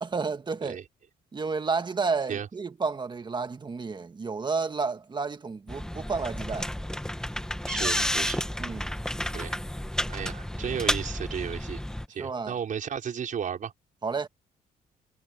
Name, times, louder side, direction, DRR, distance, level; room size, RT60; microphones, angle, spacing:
voice 1, 0.0-0.8 1.3-6.7 8.6-8.9 12.2-12.5 14.0-14.3, right 4 dB, 30° right, 1.5 m, -31 dB
sound 1, 5.7-12.1, left 1 dB, 5° left, 1.5 m, -31 dB
voice 2, 7.7-8.5 9.3-9.6 10.1-11.8 12.1-13.7, right 8 dB, 55° right, 5.5 m, -34 dB
cardioid pair, 125°, 17 cm